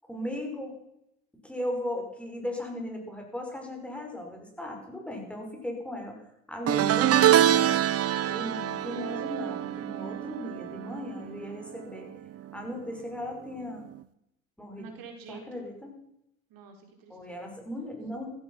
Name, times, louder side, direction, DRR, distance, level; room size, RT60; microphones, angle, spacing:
voice 1, 0.0-0.7 1.4-6.2 6.5-7.8 8.3-12.1 12.5-13.8 14.6-14.9 15.3-16.0 17.1-18.3, left 1 dB, 5° left, 1 dB, 6.0 m, -37 dB
sound 1, 6.7-12.1 12.3-12.7 13.9-14.0, right 11 dB, 35° right, 1.0 m, -25 dB
voice 2, 14.8-15.7 16.5-17.9, right 4 dB, 55° right, 4 dB, 4.0 m, -48 dB
15.0 x 14.5 x 5.8 m, 0.80 s
hypercardioid pair, 85°, 40 cm